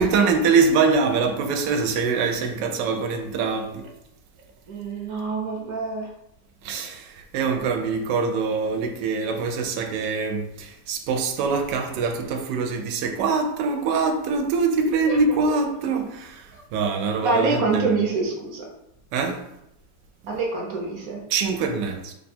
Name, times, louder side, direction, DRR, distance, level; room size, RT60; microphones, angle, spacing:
voice 1, 0.0-3.9 6.6-18.0 19.1-19.4 21.3-22.1, right 4 dB, 80° right, 1.2 m, -24 dB
voice 2, 4.7-6.1 15.1-15.2 16.5-16.6 17.2-18.7 20.3-21.2, right 3 dB, 60° right, 1.0 m, -26 dB
3.3 x 2.3 x 4.2 m
omnidirectional pair, 1.9 m